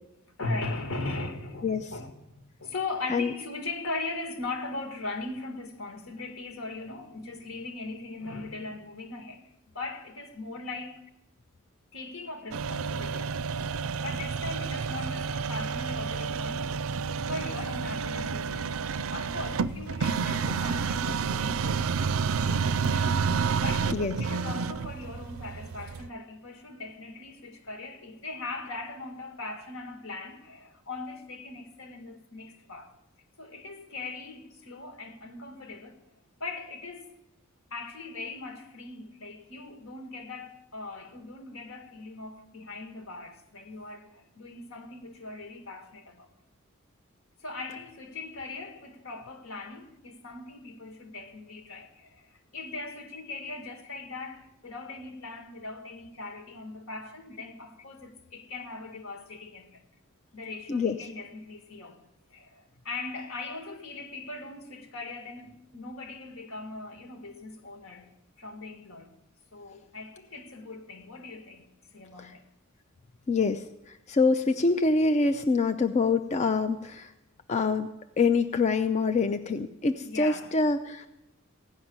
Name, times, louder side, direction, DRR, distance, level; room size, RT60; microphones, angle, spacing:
voice 1, 0.4-11.0 11.9-16.8 17.1-21.9 22.3-32.9 33.4-36.0 36.4-37.1 37.7-46.3 47.4-59.8 60.3-62.0 62.3-68.1 68.4-69.2 69.5-72.4 80.0-80.5, left 3 dB, 75° left, 1.8 m, -39 dB
voice 2, 1.6-2.0 3.1-3.3 23.9-24.2 47.7-47.8 60.7-61.1 72.2-72.3 73.3-77.1 77.5-77.9 78.2-81.1, left 4 dB, 35° left, 0.4 m, -26 dB
sound 1, 12.5-26.1, right 5 dB, 75° right, 0.4 m, -30 dB
16.0 x 5.9 x 9.4 m
head